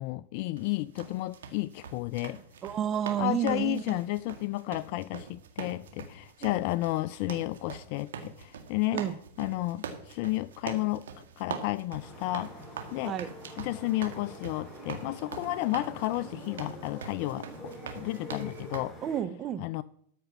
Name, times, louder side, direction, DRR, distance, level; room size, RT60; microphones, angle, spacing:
voice 1, 0.0-2.4 3.2-9.0 9.4-12.6 12.9-13.2 13.6-19.0 19.6-19.8, left 18 dB, 55° left, 0.3 m, -32 dB
sound 1, 0.6-18.8, right 6 dB, 80° right, 1.9 m, -43 dB
voice 2, 2.6-4.0 6.4-6.5 8.9-9.2 13.1-13.3 19.0-19.7, right 9 dB, 30° right, 0.7 m, -31 dB
sound 2, 12.0-19.2, equal, 5° left, 4.7 m, -45 dB
13.5 x 5.2 x 6.0 m
hypercardioid pair, 120°, 0 cm